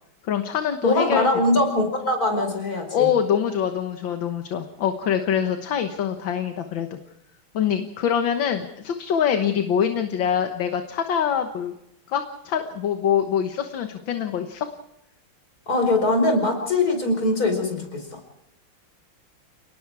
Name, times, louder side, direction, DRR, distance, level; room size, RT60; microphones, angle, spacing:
voice 1, 0.3-1.3 2.9-7.0 7.5-11.7 12.1-14.7, left 8 dB, 65° left, 6 dB, 1.9 m, -24 dB
voice 2, 0.8-3.1 15.7-18.2, left 2 dB, 40° left, 5 dB, 5.4 m, -22 dB
29.5 x 19.0 x 4.8 m, 0.81 s
omnidirectional pair, 2.4 m